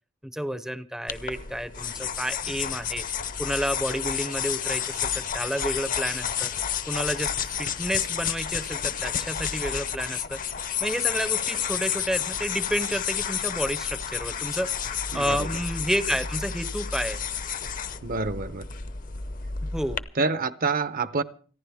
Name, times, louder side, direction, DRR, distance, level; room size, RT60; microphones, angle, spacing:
voice 1, 0.2-3.0 3.4-6.5 6.9-10.4 10.8-14.7 15.1-17.2 19.6-20.0, equal, 5° right, 0.6 m, -30 dB
sound 1, 1.1-20.0, left 8 dB, 40° left, 0.7 m, -31 dB
voice 2, 15.1-15.5 18.0-18.7 20.2-21.2, right 4 dB, 45° right, 0.7 m, -27 dB
29.5 x 10.5 x 3.5 m
head